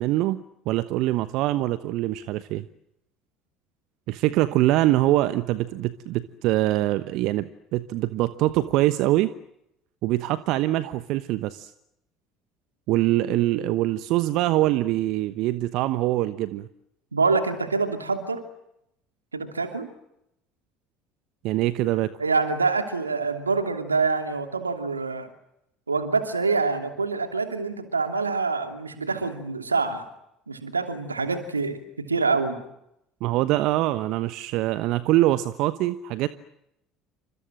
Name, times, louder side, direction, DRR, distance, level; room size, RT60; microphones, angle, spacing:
voice 1, 0.0-2.7 4.1-9.3 10.0-11.7 12.9-16.7 21.4-22.1 33.2-36.3, right 16 dB, 60° right, 14 dB, 1.1 m, -24 dB
voice 2, 17.1-18.4 19.3-19.9 22.2-25.3 25.9-30.0 30.5-32.6, right 4 dB, 90° right, 7 dB, 2.8 m, -26 dB
29.5 x 25.5 x 7.7 m, 0.80 s
figure-of-eight pair, 60°, 0 cm